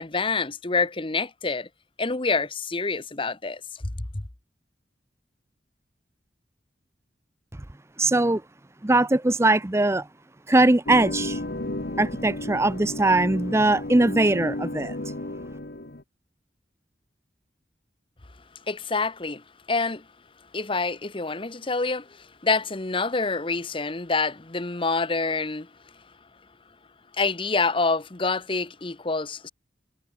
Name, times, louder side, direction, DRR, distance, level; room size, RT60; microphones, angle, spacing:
voice 1, 0.0-1.7 2.0-3.6 4.0-4.2 18.7-20.0 20.5-25.7 27.2-29.5, left 4 dB, 30° left, 1.1 m, -27 dB
voice 2, 8.0-8.4 8.8-10.1 10.5-11.4 12.0-14.9, right 2 dB, 15° right, 0.6 m, -21 dB
sound 1, 10.9-16.0, left 1 dB, 60° left, 1.7 m, -33 dB
head